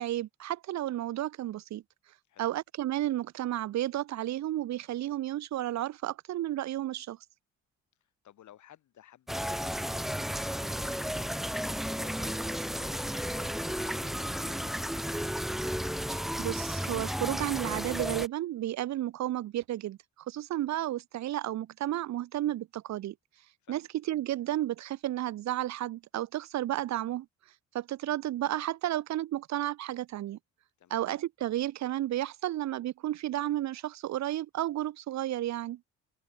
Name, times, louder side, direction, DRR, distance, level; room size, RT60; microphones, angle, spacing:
voice 1, 0.0-1.8 2.4-7.2 16.1-20.0 20.3-23.1 23.7-23.8 24.1-27.3 27.7-30.4 30.9-35.8, right 13 dB, 65° right, 0.7 m, -32 dB
voice 2, 8.0-11.5 11.8-15.4 23.6-23.9 30.8-31.0, left 11 dB, 70° left, 7.7 m, -56 dB
sound 1, 9.3-18.3, equal, ahead, 1.7 m, -33 dB
cardioid pair, 90°, 30 cm